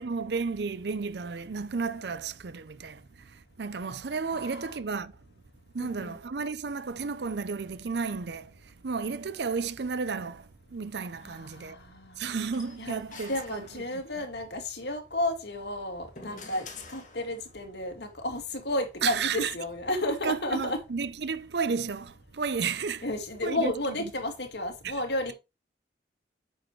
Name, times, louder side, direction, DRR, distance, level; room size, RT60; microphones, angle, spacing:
voice 1, 0.0-5.1 5.7-11.8 12.2-13.6 19.0-19.5 20.2-23.1 23.4-23.7 24.8-25.0, right 5 dB, 75° right, 0.6 m, -33 dB
voice 2, 4.3-4.8 5.8-6.2 11.2-12.3 12.8-13.0 13.3-20.8 23.0-25.3, left 1 dB, 75° left, 2.1 m, -32 dB
sound 1, 12.5-14.3 15.6-17.7, left 3 dB, 45° left, 2.2 m, -48 dB
9.1 x 6.5 x 3.2 m
head